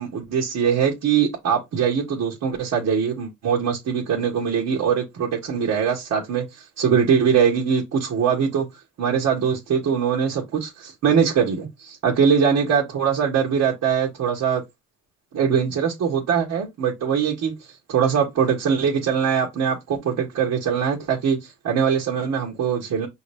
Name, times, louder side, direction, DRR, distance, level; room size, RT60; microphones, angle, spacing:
voice 1, 0.0-8.7 9.0-14.6 15.3-17.5 17.9-23.1, right 7 dB, 65° right, 1.4 m, -22 dB
5.6 x 2.8 x 3.4 m
cardioid pair, 90°, 30 cm